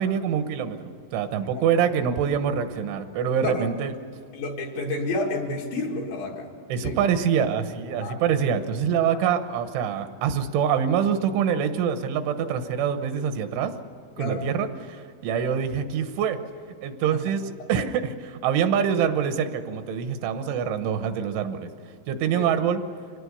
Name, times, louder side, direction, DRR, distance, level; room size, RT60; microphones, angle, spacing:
voice 1, 0.0-3.9 6.7-13.7 14.2-16.4 16.8-21.7 22.1-22.8, right 8 dB, 80° right, 9 dB, 3.5 m, -25 dB
voice 2, 4.3-6.5 6.8-7.0 8.0-8.2 14.2-14.5 15.3-15.5 22.3-22.5, left 2 dB, 70° left, 0 dB, 4.5 m, -30 dB
25.0 x 18.0 x 6.9 m, 2.4 s
omnidirectional pair, 5.5 m